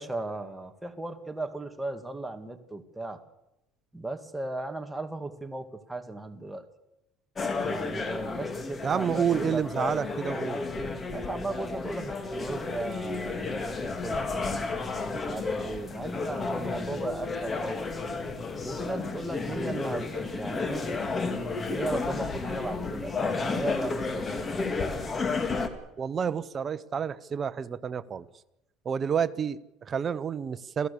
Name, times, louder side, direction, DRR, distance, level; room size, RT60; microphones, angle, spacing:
voice 1, 0.0-3.2 3.9-6.6 7.7-9.6 9.9-10.1 11.1-14.6 15.1-17.9 18.6-20.9 21.3-24.6, right 2 dB, 5° right, 5 dB, 2.0 m, -36 dB
sound 1, 7.4-25.7, left 3 dB, 25° left, 2.5 m, -32 dB
voice 2, 8.8-10.6 26.0-28.3 28.8-30.9, right 7 dB, 30° right, 13 dB, 1.0 m, -29 dB
28.5 x 16.0 x 7.0 m, 0.90 s
cardioid pair, 135°, 0 cm